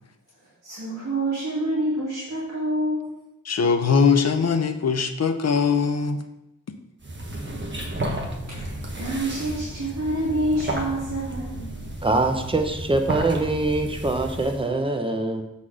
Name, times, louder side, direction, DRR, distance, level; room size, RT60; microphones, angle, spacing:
voice 1, 0.6-3.1 7.3-7.9 9.0-11.7, right 1 dB, 55° right, 2.3 m, -27 dB
voice 2, 3.5-6.2, left 5 dB, 50° left, 0.7 m, -21 dB
sound 1, 7.0-14.7, right 1 dB, 35° right, 1.2 m, -32 dB
voice 3, 12.0-15.4, right 2 dB, 15° right, 0.8 m, -23 dB
7.6 x 4.2 x 4.9 m
wide cardioid pair, 95°, 32 cm